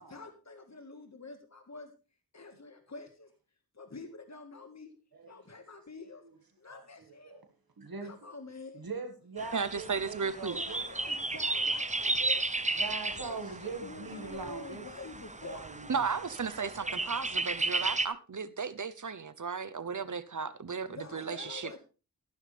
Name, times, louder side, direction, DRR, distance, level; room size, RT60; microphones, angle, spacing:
voice 1, 0.0-1.9 2.3-3.3 3.8-4.9 5.3-6.2 6.6-7.3 8.0-8.8 10.5-12.4 13.1-15.7 20.9-21.8, left 3 dB, 50° left, 1.8 m, -47 dB
voice 2, 6.7-7.4 7.8-8.1 8.7-10.8 11.9-12.2 12.8-14.9 15.4-16.1 16.6-17.0, right 4 dB, 85° right, 2.0 m, -42 dB
sound 1, 9.4-18.1, right 2 dB, 20° right, 0.9 m, -34 dB
voice 3, 9.5-10.6 15.9-21.8, right 5 dB, 60° right, 0.9 m, -35 dB
14.0 x 12.0 x 3.4 m
wide cardioid pair, 60°, 35 cm